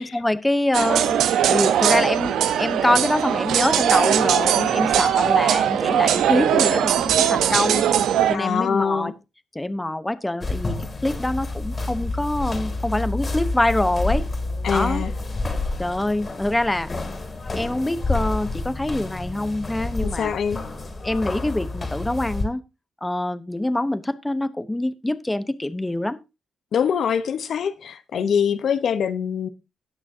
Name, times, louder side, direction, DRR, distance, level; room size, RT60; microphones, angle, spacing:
voice 1, 0.0-7.9 8.3-9.1 9.5-14.3 14.7-15.0 15.8-16.9 17.5-20.3 21.0-22.6 23.0-26.2, left 1 dB, 15° left, 0.9 m, -25 dB
sound 1, 0.7-8.4, right 9 dB, 85° right, 0.8 m, -20 dB
voice 2, 8.3-9.1 14.6-15.1 20.0-20.6 26.7-29.5, left 7 dB, 70° left, 0.9 m, -24 dB
sound 2, 10.4-22.5, left 2 dB, 35° left, 2.7 m, -29 dB
17.5 x 6.2 x 2.7 m
cardioid pair, 65°, 0 cm